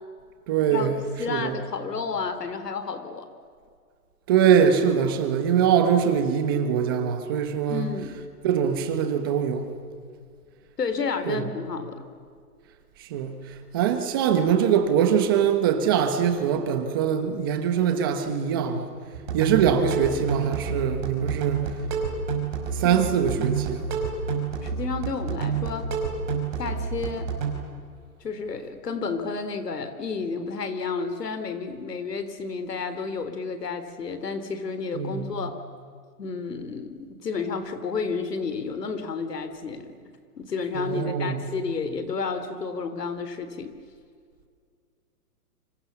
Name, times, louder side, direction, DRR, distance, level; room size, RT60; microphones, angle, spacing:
voice 1, 0.5-1.0 1.3-1.6 4.3-7.9 8.4-9.7 11.3-11.4 13.0-13.4 13.7-18.9 19.3-21.7 22.7-23.8 34.9-35.3 40.7-41.4, right 8 dB, 15° right, 1.1 m, -23 dB
voice 2, 1.2-3.3 7.7-8.2 10.8-12.0 22.8-23.5 24.6-25.9 26.6-27.3 28.2-35.6 36.2-40.0 40.4-43.7, left 4 dB, 85° left, 3.8 m, -31 dB
sound 1, 19.1-27.5, right 6 dB, 30° right, 5.1 m, -29 dB
29.5 x 25.5 x 7.1 m
hypercardioid pair, 175°, 47 cm